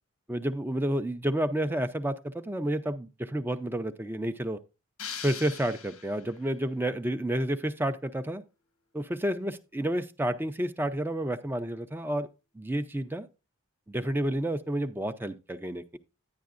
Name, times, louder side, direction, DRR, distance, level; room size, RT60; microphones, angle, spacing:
voice 1, 0.3-4.6 5.2-8.4 8.9-12.3 12.6-13.3 13.9-16.0, right 1 dB, 10° right, 0.4 m, -30 dB
sound 1, 5.0-6.5, left 7 dB, 85° left, 1.2 m, -41 dB
10.5 x 9.4 x 2.4 m
head